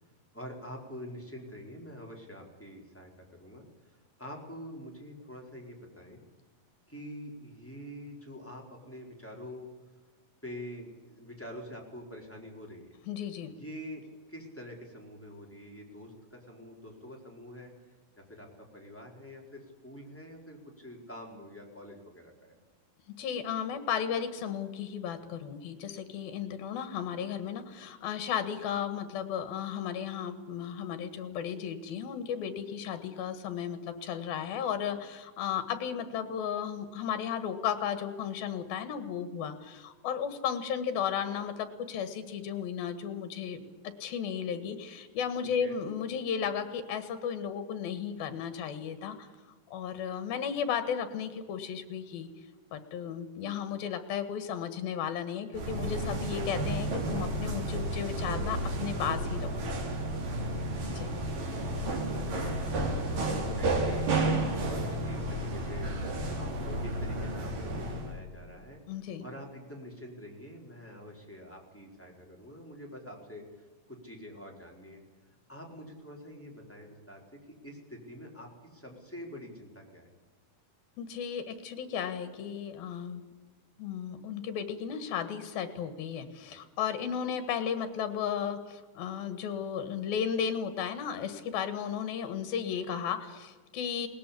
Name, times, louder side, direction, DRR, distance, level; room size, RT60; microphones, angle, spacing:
voice 1, 0.3-6.2 6.9-9.7 10.4-13.0 13.5-14.0 14.3-18.5 18.7-22.6 45.6-45.8 61.4-62.9 63.6-75.0 75.5-77.2 77.6-80.1, equal, 5° left, 0 dB, 4.1 m, -46 dB
voice 2, 13.1-13.5 23.2-43.6 43.8-49.3 49.7-52.3 52.7-59.7 60.8-61.2 68.9-69.2 81.0-83.2 83.8-94.1, left 8 dB, 85° left, 9 dB, 3.5 m, -34 dB
sound 1, 55.5-68.1, right 1 dB, 65° right, 5.0 m, -32 dB
21.0 x 19.0 x 8.5 m, 1.3 s
omnidirectional pair, 4.2 m